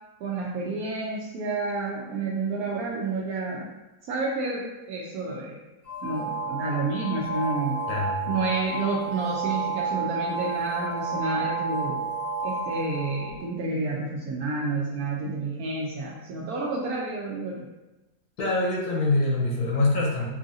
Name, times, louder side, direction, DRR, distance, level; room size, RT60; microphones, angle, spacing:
voice 1, 0.2-3.7 4.1-5.6 6.0-7.8 8.3-12.0 12.4-17.7, right 3 dB, 70° right, -3 dB, 1.0 m, -30 dB
sound 1, 5.9-13.4, right 4 dB, 55° left, 0.7 m, -31 dB
voice 2, 7.9-8.3 18.4-20.3, left 2 dB, 75° left, -3 dB, 1.3 m, -25 dB
5.5 x 2.5 x 2.6 m, 1.0 s
omnidirectional pair, 1.7 m